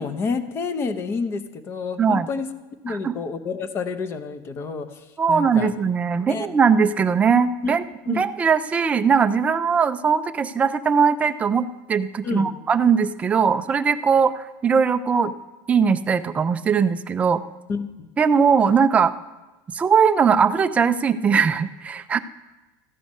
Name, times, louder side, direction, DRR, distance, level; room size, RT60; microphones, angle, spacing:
voice 1, 0.0-2.5 2.8-5.7 6.3-6.5 7.6-7.8 8.1-8.2 12.2-12.5 17.7-18.1, left 4 dB, 25° left, 11 dB, 0.7 m, -29 dB
voice 2, 5.2-15.3 15.7-17.4 18.2-19.1 19.7-22.2, right 6 dB, 15° right, 9 dB, 0.3 m, -20 dB
13.5 x 7.7 x 5.3 m, 1.1 s
cardioid pair, 170°, 10 cm